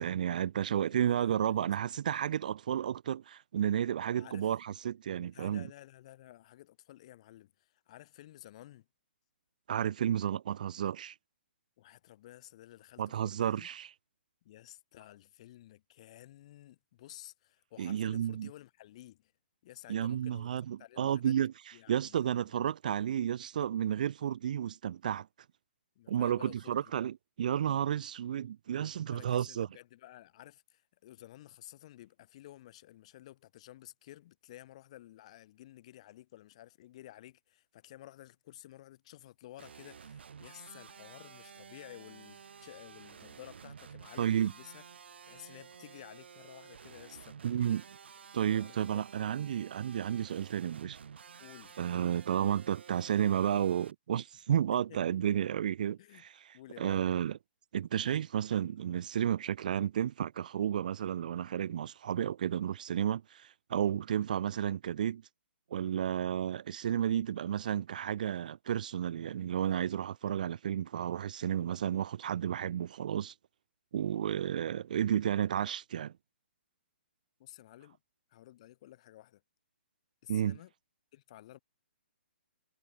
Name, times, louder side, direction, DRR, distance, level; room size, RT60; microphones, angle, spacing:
voice 1, 0.0-5.7 9.7-11.2 13.0-13.9 17.8-18.5 19.9-21.5 21.9-25.3 26.1-29.7 44.2-44.5 47.4-47.8 48.3-51.0 51.8-57.4 57.7-65.2 65.7-73.3 73.9-76.1 80.3-80.6, right 9 dB, 45° right, 0.5 m, -32 dB
voice 2, 0.9-2.0 4.2-4.5 5.2-8.9 11.8-13.7 14.4-19.3 19.6-21.4 21.7-22.5 26.0-26.9 29.1-44.8 45.3-47.4 48.5-49.1 51.4-51.8 54.9-55.0 56.0-56.2 56.5-57.1 77.4-78.0 78.3-79.4 80.2-80.7 81.1-81.6, left 14 dB, 30° left, 2.8 m, -53 dB
sound 1, 39.6-53.9, right 7 dB, 65° right, 3.8 m, -52 dB
hypercardioid pair, 170°, 6 cm